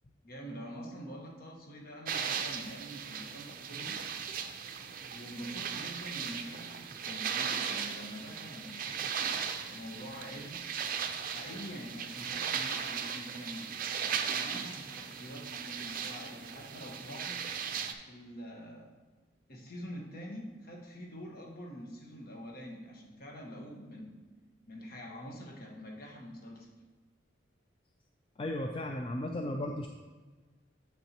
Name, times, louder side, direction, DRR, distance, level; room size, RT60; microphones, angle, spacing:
voice 1, 0.2-4.0 5.1-10.6 11.2-13.8 14.3-17.5 18.1-19.0 19.5-24.2 24.7-26.7, equal, 55° left, 0 dB, 1.3 m, -45 dB
sound 1, 2.1-17.9, right 7 dB, 50° right, 0.5 m, -37 dB
voice 2, 28.4-29.9, left 1 dB, 30° left, 3 dB, 0.4 m, -35 dB
7.4 x 7.0 x 2.9 m, 1.3 s
head